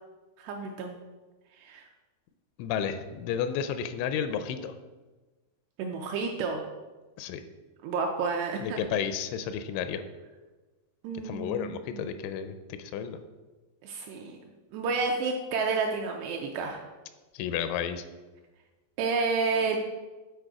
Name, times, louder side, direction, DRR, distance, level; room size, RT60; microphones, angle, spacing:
voice 1, 0.4-1.0 1.6-1.8 5.8-6.6 7.8-8.8 11.0-12.1 13.8-14.4 14.7-16.8 19.0-19.8, right 4 dB, 80° right, 2 dB, 2.4 m, -30 dB
voice 2, 2.6-4.8 7.2-7.4 8.6-10.0 11.2-13.2 17.3-18.0, left 8 dB, 85° left, 10 dB, 3.0 m, -32 dB
9.0 x 4.4 x 4.8 m, 1.2 s
omnidirectional pair, 5.3 m